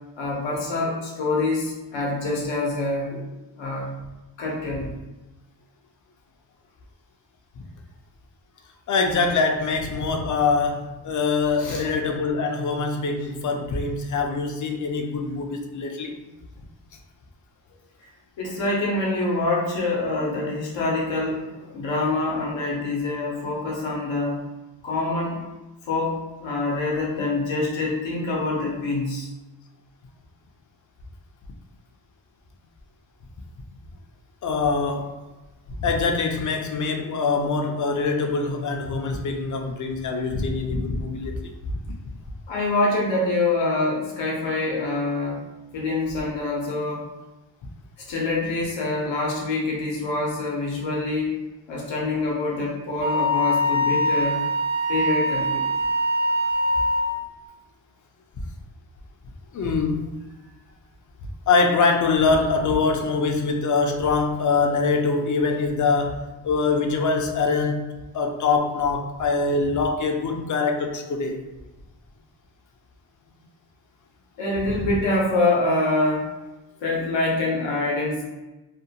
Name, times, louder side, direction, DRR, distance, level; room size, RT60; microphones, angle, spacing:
voice 1, 0.2-3.9 4.4-4.9 11.6-11.8 18.4-24.4 24.8-25.5 25.8-29.3 42.5-45.4 45.7-47.1 48.1-51.4 51.7-54.4 54.9-55.7 74.4-76.3 76.8-78.2, left 2 dB, 85° left, -3 dB, 0.8 m, -25 dB
voice 2, 8.9-16.2 34.4-35.2 35.8-41.8 59.5-60.1 61.5-67.8 68.1-71.4, left 4 dB, 45° left, 4 dB, 0.4 m, -24 dB
Wind instrument woodwind instrument, 53.0-57.2, left 1 dB, 40° right, 0.5 m, -23 dB
2.5 x 2.1 x 2.7 m, 1.1 s
cardioid pair, 95°, 44 cm